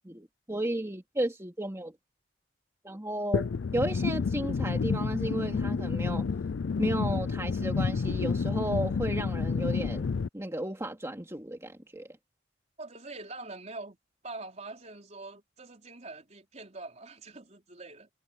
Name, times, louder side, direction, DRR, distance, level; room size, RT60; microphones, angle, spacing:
voice 1, 0.0-1.9 2.8-3.5 3.7-6.3 6.8-10.1 10.3-12.1, right 1 dB, 15° right, 2.5 m, -33 dB
sound 1, 3.3-10.3, left 5 dB, 75° left, 0.4 m, -29 dB
voice 2, 12.8-14.0 14.2-18.1, right 3 dB, 35° right, 4.4 m, -44 dB
head